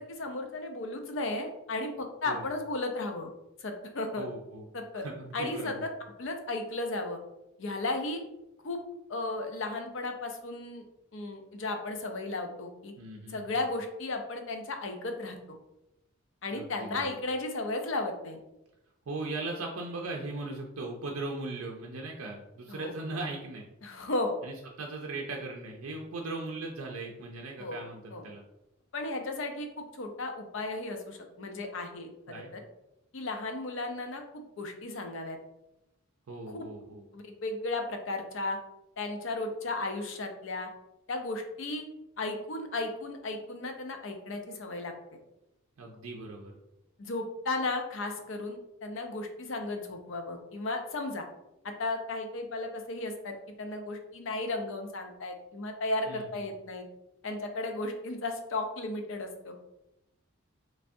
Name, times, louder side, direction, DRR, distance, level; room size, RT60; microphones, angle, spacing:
voice 1, 0.2-3.3 3.6-4.3 4.7-5.0 5.3-5.9 6.2-7.2 7.6-8.2 8.6-8.8 9.1-10.8 11.1-12.9 13.3-15.4 16.4-18.4 22.7-22.9 23.8-24.4 27.6-27.8 28.1-28.2 28.9-32.6 33.1-35.4 36.5-36.7 37.1-38.6 39.0-40.7 41.1-41.8 42.2-44.9 47.0-51.2 51.6-56.8 57.2-59.5, left 2 dB, 60° left, 5 dB, 0.5 m, -35 dB
voice 2, 4.2-4.6 4.9-5.8 13.0-13.4 16.5-17.2 19.1-23.6 24.4-28.4 32.3-32.5 36.3-37.0 45.8-46.5 56.1-56.4, right 2 dB, 80° right, 1 dB, 0.4 m, -38 dB
3.4 x 3.2 x 2.6 m, 0.90 s
head